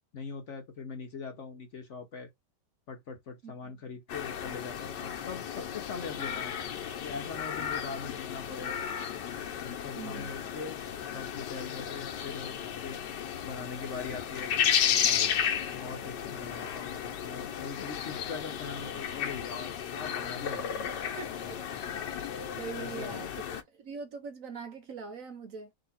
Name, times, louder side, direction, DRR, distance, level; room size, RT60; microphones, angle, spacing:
voice 1, 0.1-2.3 2.9-6.5 7.0-8.9 9.6-10.8 11.1-12.5 12.8-13.0 13.4-14.5 15.0-15.4 15.7-21.0 22.8-23.4, left 5 dB, 55° left, 1.0 m, -42 dB
voice 2, 3.4-3.9 9.9-10.6 21.1-21.3 22.6-25.7, right 5 dB, 60° right, 1.0 m, -42 dB
sound 1, 4.1-23.6, left 9 dB, 85° left, 1.5 m, -34 dB
3.8 x 2.8 x 4.1 m
omnidirectional pair, 1.8 m